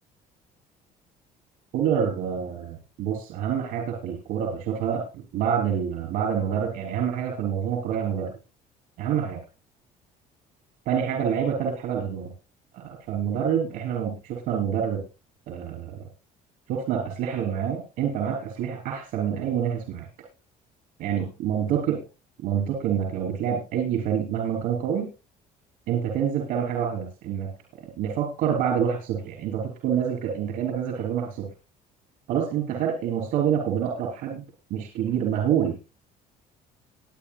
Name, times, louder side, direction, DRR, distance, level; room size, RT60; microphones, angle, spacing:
voice 1, 1.7-8.3 9.0-9.4 10.9-12.3 12.7-15.0 15.5-16.0 16.7-20.1 21.0-22.0 22.4-25.1 25.9-27.5 27.8-31.5 32.3-34.4 34.7-35.8, right 8 dB, 75° right, 2 dB, 3.6 m, -27 dB
21.5 x 9.1 x 2.3 m, 0.29 s
cardioid pair, 160°, 15 cm